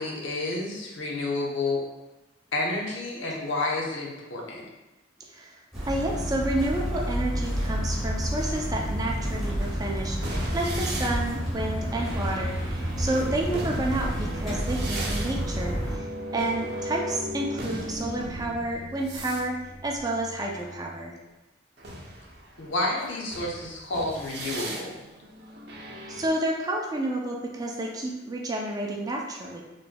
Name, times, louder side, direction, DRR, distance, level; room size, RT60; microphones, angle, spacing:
voice 1, 0.0-1.8 2.5-4.6 22.6-24.9, left 2 dB, 80° left, -2 dB, 0.8 m, -30 dB
sound 1, 5.7-16.0, equal, ahead, 1.2 m, -29 dB
voice 2, 5.9-16.1 16.3-19.6 19.8-21.1 26.1-29.6, right 1 dB, 20° right, -1 dB, 0.4 m, -30 dB
sound 2, 9.3-21.1 21.8-26.3, right 1 dB, 55° right, 0.6 m, -38 dB
4.3 x 3.2 x 2.2 m, 1.1 s
head